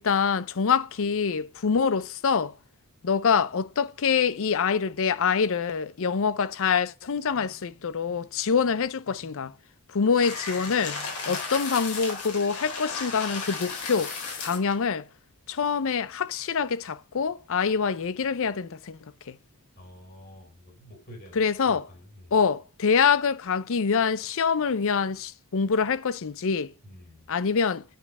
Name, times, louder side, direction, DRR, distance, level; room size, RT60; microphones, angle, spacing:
voice 1, 0.0-2.5 3.0-9.5 9.9-14.1 14.4-15.0 15.5-19.0 19.3-19.4 21.3-21.9 22.3-26.7 27.3-27.8, left 6 dB, 65° left, 0.6 m, -25 dB
sound 1, 10.2-14.7, left 4 dB, 85° left, 4.0 m, -35 dB
voice 2, 19.8-22.4 26.8-27.3, equal, 40° left, 3.2 m, -49 dB
9.3 x 4.8 x 5.4 m
head